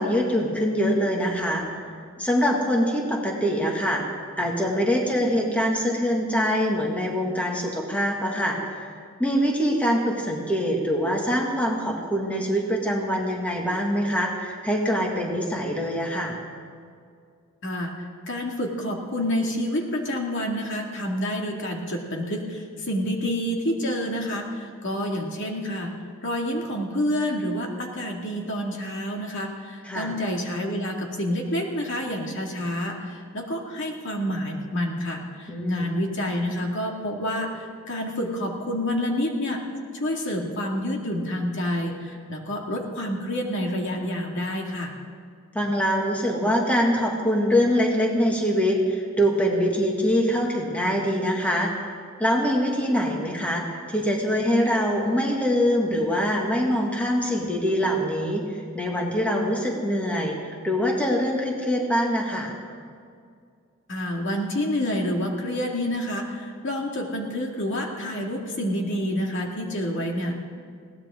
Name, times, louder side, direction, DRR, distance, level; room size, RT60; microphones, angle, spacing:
voice 1, 0.0-1.7 2.2-8.9 9.2-16.4 29.8-30.1 35.5-35.9 45.5-58.4 58.7-62.5, equal, 5° left, -1 dB, 2.0 m, -24 dB
voice 2, 17.6-25.9 26.2-39.6 39.9-44.9 63.9-70.4, equal, 60° left, 0 dB, 2.2 m, -28 dB
21.0 x 17.5 x 3.7 m, 2.2 s
head